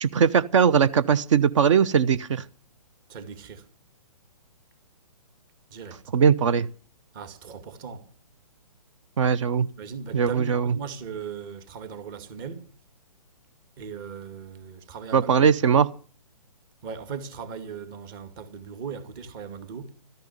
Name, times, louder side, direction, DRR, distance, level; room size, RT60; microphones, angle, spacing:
voice 1, 0.0-2.4 6.1-6.7 9.2-9.7 10.1-10.8 15.1-15.9, right 7 dB, 55° right, 0.9 m, -20 dB
voice 2, 3.1-3.6 5.7-6.0 7.1-8.1 9.8-12.6 13.8-15.7 16.8-19.9, right 6 dB, 35° right, 2.4 m, -38 dB
13.5 x 10.5 x 9.5 m
hypercardioid pair, 140°, 19 cm